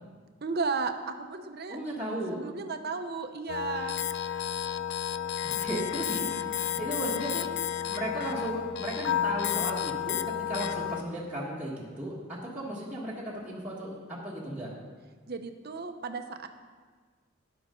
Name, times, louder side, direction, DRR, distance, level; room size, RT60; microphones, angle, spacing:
voice 1, 0.4-1.8 2.3-4.0 15.3-16.5, right 4 dB, 50° right, 7 dB, 0.8 m, -34 dB
voice 2, 1.7-2.4 5.4-14.7, right 1 dB, 5° right, -8 dB, 1.6 m, -36 dB
sound 1, 3.5-11.0, left 10 dB, 55° left, 0.4 m, -31 dB
13.0 x 10.5 x 3.8 m, 1.5 s
head